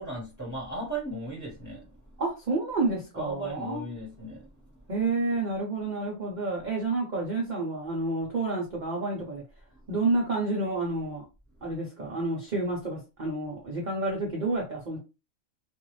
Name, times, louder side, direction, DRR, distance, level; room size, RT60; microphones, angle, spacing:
voice 1, 0.0-1.8 3.1-4.5, right 2 dB, 15° left, 1.2 m, -36 dB
voice 2, 2.2-3.9 4.9-9.4 9.9-11.2 11.6-15.0, right 2 dB, 40° right, 0.7 m, -29 dB
2.5 x 2.4 x 3.1 m
omnidirectional pair, 1.5 m